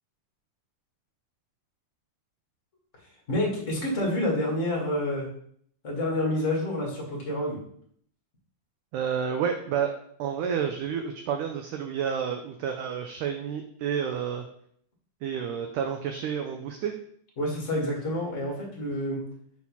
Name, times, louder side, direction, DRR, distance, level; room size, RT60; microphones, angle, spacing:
voice 1, 3.3-5.3 5.8-7.6 17.4-19.2, left 1 dB, 30° left, -3 dB, 1.5 m, -28 dB
voice 2, 8.9-9.9 10.2-14.5 15.2-16.9, right 7 dB, 85° right, 5 dB, 1.8 m, -30 dB
6.3 x 4.2 x 5.5 m, 0.63 s
omnidirectional pair, 4.3 m